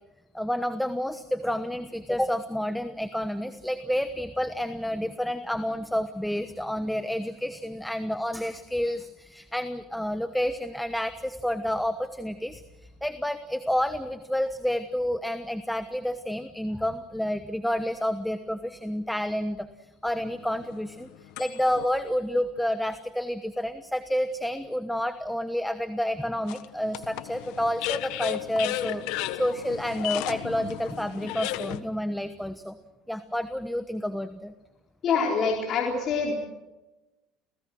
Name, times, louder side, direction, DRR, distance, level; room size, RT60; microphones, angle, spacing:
voice 1, 0.3-12.6 13.0-19.7 20.0-21.1 21.4-32.8 33.1-34.5, equal, 5° left, 10 dB, 1.1 m, -29 dB
sound 1, 20.2-21.9 22.6-22.7 26.5-31.8, left 13 dB, 75° left, 1.3 m, -34 dB
voice 2, 35.0-36.3, left 5 dB, 45° left, -1 dB, 4.1 m, -25 dB
29.5 x 18.0 x 6.3 m, 1.1 s
supercardioid pair, 110°, 0 cm